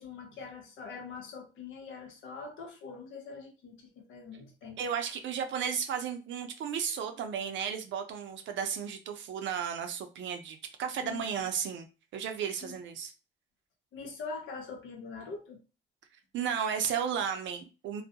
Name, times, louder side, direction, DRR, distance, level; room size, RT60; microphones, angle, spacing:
voice 1, 0.0-4.8 11.0-11.5 12.6-12.8 13.9-15.6, left 4 dB, 80° left, 0.8 m, -43 dB
voice 2, 4.8-11.9 12.1-13.1 16.3-18.0, right 7 dB, 70° right, 0.5 m, -34 dB
2.3 x 2.1 x 2.7 m
cardioid pair, 90°, 20 cm